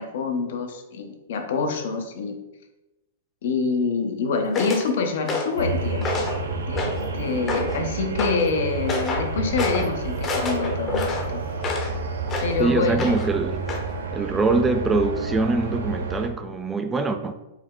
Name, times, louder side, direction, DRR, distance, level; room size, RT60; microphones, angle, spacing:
voice 1, 0.0-2.4 3.4-6.3 6.7-11.4 12.4-13.0, left 4 dB, 70° left, 4 dB, 0.7 m, -26 dB
sound 1, 4.5-4.9 5.3-5.6 6.0-6.4 6.8-7.1 7.5-7.8 8.2-8.4 8.9-9.3 9.6-9.9 10.2-11.9 12.3-12.6 13.0-13.3 13.7-13.9, left 3 dB, 25° left, 0.7 m, -28 dB
sound 2, 5.6-16.3, right 4 dB, 80° right, 0.5 m, -30 dB
voice 2, 12.6-13.7 14.1-17.3, right 3 dB, 15° right, 8 dB, 0.3 m, -23 dB
4.7 x 2.2 x 3.6 m, 0.97 s
hypercardioid pair, 120°, 0 cm